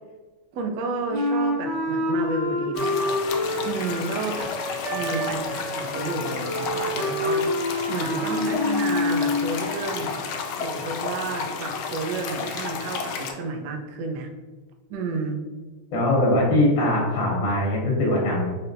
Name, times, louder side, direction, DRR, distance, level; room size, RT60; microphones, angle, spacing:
voice 1, 0.5-3.0 3.6-4.5 4.9-10.1 10.6-14.3 14.9-15.4, right 3 dB, 80° right, 4 dB, 0.9 m, -31 dB
Wind instrument woodwind instrument, 1.1-9.5, left 1 dB, 25° right, 1.4 m, -27 dB
sound 1, 2.7-13.3, left 5 dB, 80° left, 1.3 m, -32 dB
voice 2, 15.9-18.5, left 1 dB, 55° left, -3 dB, 1.1 m, -21 dB
4.1 x 3.3 x 2.6 m, 1.3 s
omnidirectional pair, 2.3 m